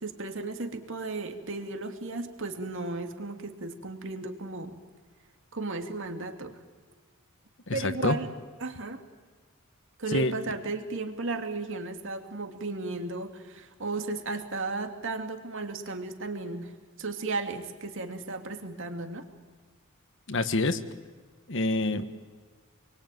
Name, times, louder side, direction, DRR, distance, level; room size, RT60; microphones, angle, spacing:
voice 1, 0.0-4.8 5.5-6.6 7.7-8.3 8.6-9.0 10.0-19.3, right 3 dB, 60° right, 5 dB, 2.8 m, -35 dB
voice 2, 7.7-8.2 10.1-10.3 20.3-20.8 21.5-22.1, left 2 dB, 60° left, 11 dB, 1.5 m, -26 dB
28.0 x 22.5 x 9.4 m, 1.4 s
head